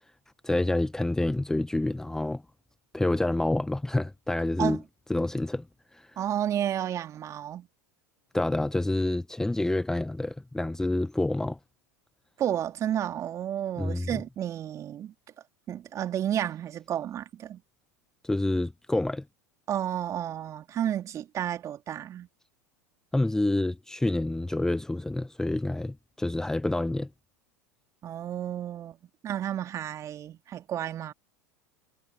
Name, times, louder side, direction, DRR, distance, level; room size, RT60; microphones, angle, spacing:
voice 1, 0.4-2.4 2.9-4.8 5.1-5.6 5.9-6.1 8.3-11.6 13.8-14.2 18.2-19.2 23.1-27.1, left 2 dB, 5° left, 1.0 m, -28 dB
voice 2, 6.2-7.7 12.4-15.1 15.7-17.6 19.7-22.3 28.0-29.0 29.2-31.1, right 10 dB, 35° right, 2.7 m, -31 dB
figure-of-eight pair, 80°, 9 cm